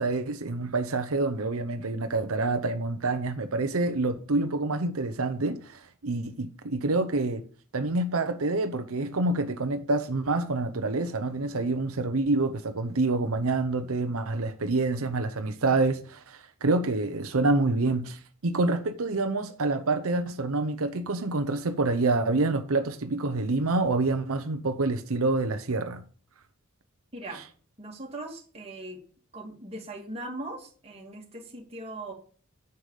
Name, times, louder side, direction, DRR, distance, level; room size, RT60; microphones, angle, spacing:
voice 1, 0.0-7.4 7.7-26.0, right 2 dB, 80° right, 0.8 m, -27 dB
voice 2, 27.1-27.4 27.8-29.0 29.3-32.1, right 2 dB, 30° right, 2.5 m, -39 dB
10.0 x 7.0 x 5.0 m
head